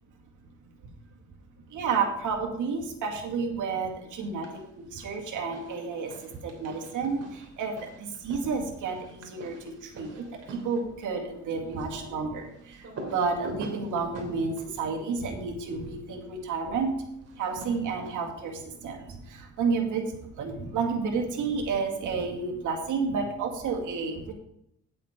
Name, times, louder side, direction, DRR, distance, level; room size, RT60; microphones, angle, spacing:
voice 1, 1.7-4.4 4.8-6.1 6.4-7.2 7.6-7.7 8.2-9.5 9.9-10.1 10.6-12.4 13.1-16.9 17.4-18.5 18.8-19.0 19.6-20.0 20.4-24.3, right 5 dB, 80° right, 1 dB, 2.2 m, -30 dB
sound 1, 4.1-4.7 5.0-16.0 17.2-18.4, right 2 dB, 55° right, 3.0 m, -45 dB
9.1 x 7.7 x 5.0 m, 0.77 s
cardioid pair, 90°, 30 cm